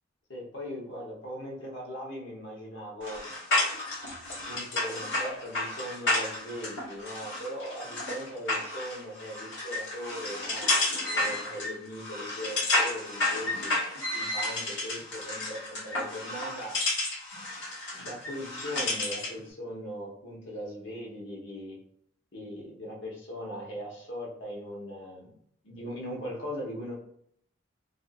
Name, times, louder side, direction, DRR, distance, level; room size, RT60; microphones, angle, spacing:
voice 1, 0.3-3.2 4.5-10.7 11.0-13.7 14.1-16.7 17.9-21.8 22.3-25.4 25.6-26.9, equal, 70° left, -2 dB, 1.1 m, -39 dB
sound 1, 3.0-19.4, left 2 dB, 90° left, 1.3 m, -31 dB
2.6 x 2.5 x 2.5 m, 0.66 s
head